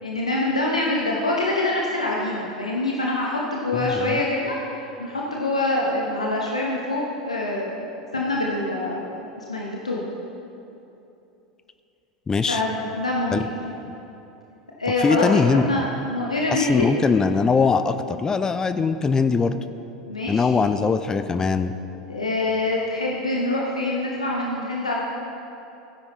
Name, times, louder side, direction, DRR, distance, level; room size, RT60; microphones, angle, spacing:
voice 1, 0.0-4.6 5.0-7.9 8.1-9.0 9.4-10.1 12.5-13.8 14.8-16.9 20.1-20.4 22.1-24.9, left 2 dB, 80° left, -3 dB, 1.1 m, -25 dB
voice 2, 3.7-4.2 12.3-12.6 13.3-13.4 15.0-15.8 16.5-19.6 20.3-21.7, left 5 dB, 20° left, 11 dB, 0.4 m, -21 dB
16.0 x 10.0 x 3.1 m, 2.9 s
figure-of-eight pair, 80°, 3 cm